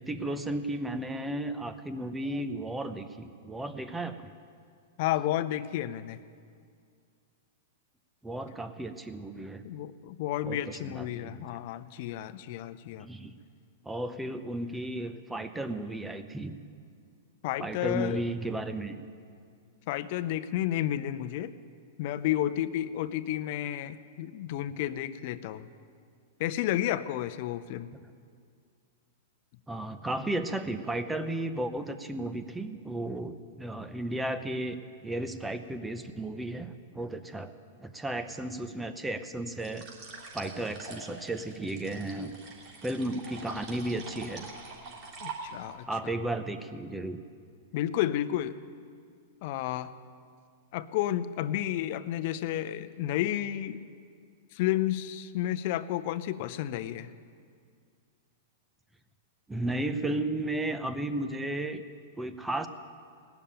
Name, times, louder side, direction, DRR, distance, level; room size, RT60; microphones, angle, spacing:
voice 1, 0.0-4.3 8.2-9.6 10.4-11.4 13.0-13.4 13.8-16.6 17.6-19.1 27.9-28.1 29.7-34.8 35.0-37.5 37.8-39.9 40.3-42.4 42.8-44.5 45.9-47.2 59.5-61.8 62.2-62.7, right 1 dB, 5° right, 9 dB, 0.8 m, -34 dB
voice 2, 5.0-6.2 9.6-13.1 17.4-18.2 19.9-21.5 22.0-25.7 26.4-27.9 45.2-46.2 47.7-48.6 49.4-49.9 50.7-53.9 54.5-57.1, left 12 dB, 55° left, 11 dB, 0.6 m, -31 dB
sound 1, 39.6-45.8, right 3 dB, 40° right, 3.5 m, -44 dB
18.5 x 7.0 x 8.9 m, 2.2 s
hypercardioid pair, 130°, 0 cm